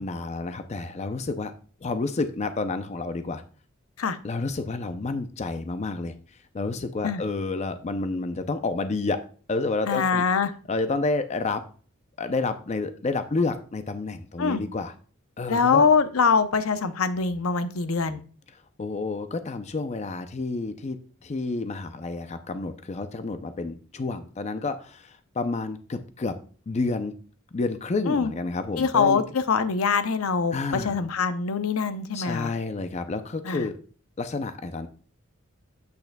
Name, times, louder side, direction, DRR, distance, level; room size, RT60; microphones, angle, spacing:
voice 1, 0.0-1.5 1.8-3.4 4.2-6.1 6.5-9.2 9.5-10.2 10.7-11.6 12.2-14.9 15.4-15.9 18.8-21.0 21.2-26.4 26.7-27.1 27.5-29.2 30.5-31.0 32.1-33.8 34.2-34.9, left 3 dB, 30° left, 9 dB, 0.4 m, -29 dB
voice 2, 9.9-10.5 14.4-14.6 15.5-18.2 28.1-28.3 28.8-32.5 33.4-33.7, left 5 dB, 85° left, 11 dB, 0.6 m, -23 dB
8.1 x 6.6 x 2.2 m, 0.40 s
head